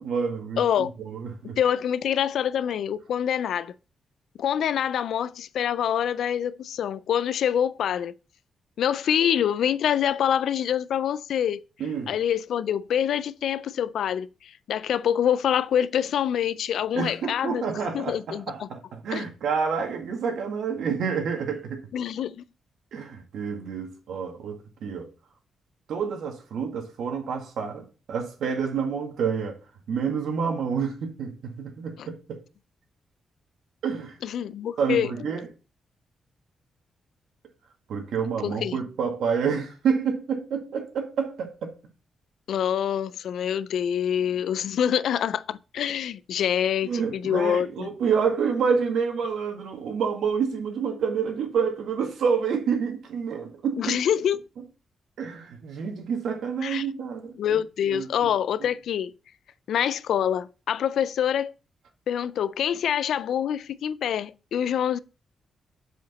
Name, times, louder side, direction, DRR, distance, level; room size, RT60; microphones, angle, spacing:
voice 1, 0.0-1.6 11.8-12.1 16.9-21.8 22.9-25.1 25.9-29.6 29.9-32.4 33.8-34.1 34.8-35.5 37.9-41.7 46.8-53.9 55.2-58.3, right 6 dB, 80° right, 1.9 m, -28 dB
voice 2, 0.6-0.9 1.6-3.7 4.4-8.1 8.8-11.6 12.1-18.7 19.1-19.3 21.9-22.4 32.0-32.1 34.2-35.1 38.4-38.8 42.5-47.9 53.8-54.4 56.6-56.9 57.4-59.1 59.7-61.5 62.1-65.0, left 9 dB, 70° left, 0.3 m, -26 dB
7.5 x 5.1 x 4.1 m
wide cardioid pair, 180°, 0 cm